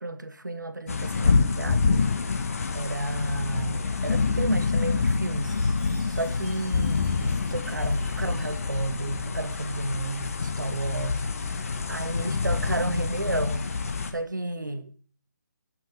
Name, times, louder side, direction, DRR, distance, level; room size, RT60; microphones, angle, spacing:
voice 1, 0.0-2.1 2.7-5.6 6.1-11.2 11.5-13.7 14.1-15.0, right 2 dB, 80° right, 1.3 m, -32 dB
sound 1, 0.9-14.1, left 4 dB, 50° left, 1.5 m, -27 dB
Chime, 5.4-9.5, right 2 dB, 30° right, 7.4 m, -54 dB
17.5 x 6.2 x 5.1 m
figure-of-eight pair, 145°, 10 cm